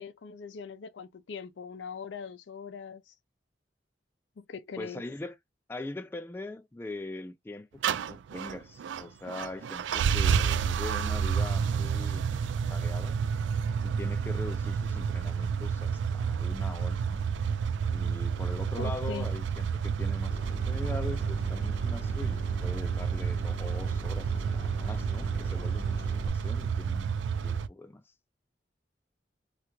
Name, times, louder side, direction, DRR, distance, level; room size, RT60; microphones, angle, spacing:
voice 1, 0.0-3.1 4.4-5.0 18.8-19.3, left 5 dB, 80° left, 0.5 m, -41 dB
voice 2, 4.8-5.4 5.7-12.3 12.7-13.2 13.8-17.2 17.9-27.2 27.4-28.0, left 2 dB, 10° left, 0.3 m, -41 dB
sound 1, 7.8-27.7, right 6 dB, 80° right, 0.3 m, -30 dB
sound 2, 20.3-26.3, equal, 45° left, 1.5 m, -41 dB
3.3 x 2.4 x 2.9 m
head